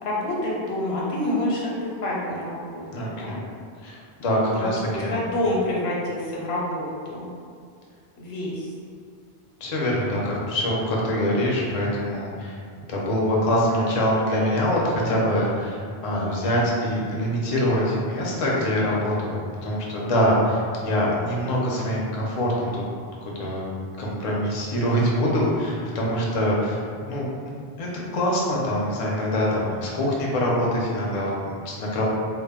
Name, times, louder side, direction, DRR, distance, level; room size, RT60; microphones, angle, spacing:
voice 1, 0.0-3.4 4.5-7.3 8.2-8.7, left 1 dB, 85° left, -5 dB, 0.9 m, -28 dB
voice 2, 2.9-3.4 3.8-5.1 9.6-12.6 12.9-22.8 23.4-32.0, equal, 50° left, -4 dB, 0.4 m, -24 dB
2.1 x 2.0 x 3.5 m, 2.2 s
omnidirectional pair, 1.0 m